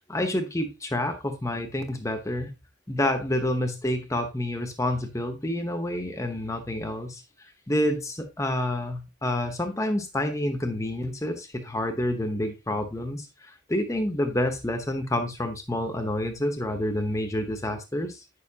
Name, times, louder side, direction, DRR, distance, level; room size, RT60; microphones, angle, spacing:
voice 1, 0.1-2.5 2.9-7.2 7.7-18.2, left 1 dB, 15° left, 0.9 m, -28 dB
9.2 x 6.7 x 2.8 m
head